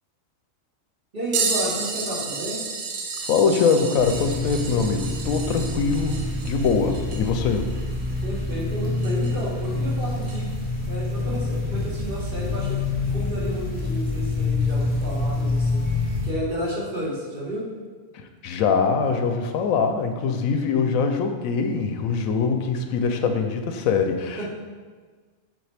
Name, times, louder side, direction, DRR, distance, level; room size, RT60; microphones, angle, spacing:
voice 1, 1.1-2.6 8.2-10.5 10.8-12.8 13.1-17.6 24.4-24.5, equal, 40° right, -5 dB, 1.5 m, -31 dB
sound 1, 1.3-9.5 10.3-10.4 12.7-12.8 13.8-14.0 15.0-15.1, right 4 dB, 75° right, 1.1 m, -32 dB
voice 2, 3.2-7.7 18.4-24.5, left 5 dB, 80° left, 6 dB, 1.0 m, -23 dB
sound 2, 4.0-16.3, left 2 dB, 5° right, 1.5 m, -27 dB
7.8 x 3.7 x 3.3 m, 1.5 s
omnidirectional pair, 1.4 m